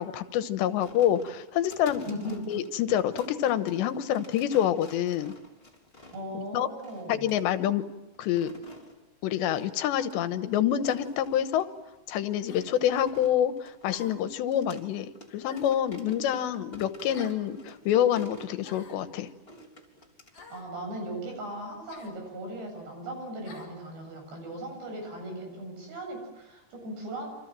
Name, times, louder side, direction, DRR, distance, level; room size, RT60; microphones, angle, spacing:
voice 1, 0.0-2.1 2.5-5.3 6.5-6.7 7.1-7.9 8.2-8.5 9.2-11.7 12.1-19.3, left 10 dB, 85° left, 10 dB, 3.4 m, -27 dB
sound 1, 0.8-6.4 6.8-7.5 8.1-9.0 9.5-9.8 10.1-10.2 10.7-11.6 12.1-14.9 15.1-15.3 15.6-18.5 19.5-20.5, left 1 dB, 15° left, 3.2 m, -49 dB
voice 2, 2.1-2.4 6.1-7.3 20.4-27.3, right 1 dB, 70° right, 3 dB, 10.0 m, -38 dB
sound 2, 11.0-11.3 12.5-12.7 13.9-14.3 15.5-15.9 17.1-17.4 18.6-19.0 20.3-20.7 21.9-22.2 23.4-23.7, left 5 dB, 50° left, 5.5 m, -49 dB
28.5 x 26.5 x 7.7 m, 0.97 s
omnidirectional pair, 4.9 m